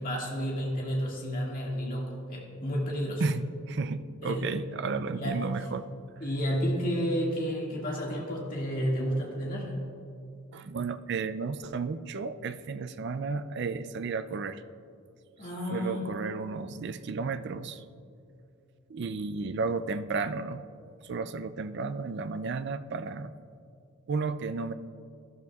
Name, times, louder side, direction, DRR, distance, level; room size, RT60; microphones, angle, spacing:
voice 1, 0.0-3.2 4.2-4.5 4.9-5.5 6.2-9.7 15.4-16.1, equal, 40° left, -3 dB, 2.0 m, -31 dB
voice 2, 3.2-5.9 10.5-14.6 15.7-17.8 18.9-20.6 21.0-23.3 24.1-24.7, right 4 dB, 50° right, 11 dB, 0.4 m, -33 dB
13.5 x 12.0 x 2.4 m, 2.5 s
head